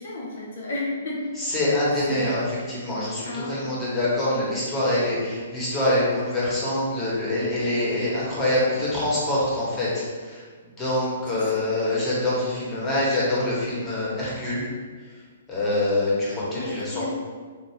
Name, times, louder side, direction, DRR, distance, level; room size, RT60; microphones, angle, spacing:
voice 1, 0.0-1.2 2.1-2.4 3.2-3.8 11.3-11.7 16.5-17.1, left 2 dB, 70° left, -3 dB, 0.6 m, -33 dB
voice 2, 1.4-10.4 10.8-14.7 15.5-17.1, left 1 dB, 15° left, -8 dB, 1.2 m, -25 dB
3.6 x 2.5 x 3.1 m, 1.5 s
hypercardioid pair, 140°, 0 cm